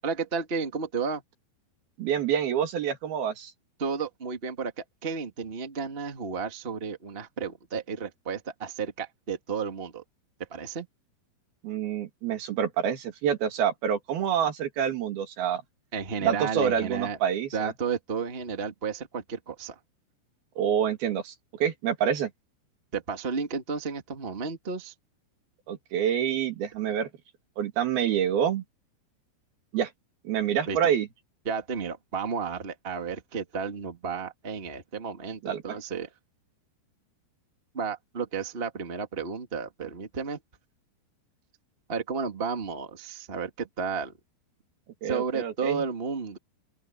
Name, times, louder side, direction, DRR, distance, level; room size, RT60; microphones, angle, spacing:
voice 1, 0.0-1.2 3.8-10.0 10.5-10.9 15.9-17.2 17.5-19.8 22.9-24.9 30.7-30.8 31.4-36.1 37.7-40.4 41.9-44.1 45.0-46.4, right 5 dB, 85° right, 0.5 m, -32 dB
voice 2, 2.0-3.5 11.6-15.6 16.2-17.7 20.6-21.3 21.6-22.3 25.7-27.1 27.6-28.6 29.7-29.9 30.3-31.1 35.4-35.6 45.0-45.8, right 8 dB, 60° right, 3.8 m, -27 dB
open air
omnidirectional pair, 5.2 m